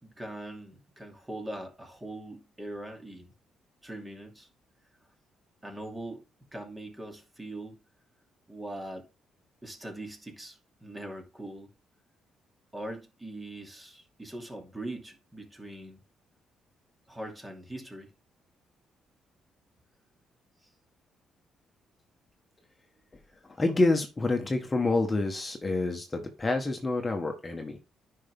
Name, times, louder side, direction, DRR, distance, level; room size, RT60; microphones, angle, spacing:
voice 1, 0.0-3.3 3.8-4.5 5.6-6.2 6.5-7.8 8.5-9.1 9.6-11.7 12.7-16.0 17.1-18.1 20.6-20.7, right 1 dB, 15° right, 2.7 m, -41 dB
voice 2, 23.6-27.8, left 2 dB, 20° left, 1.5 m, -27 dB
9.8 x 5.7 x 3.6 m
cardioid pair, 90°, 0 cm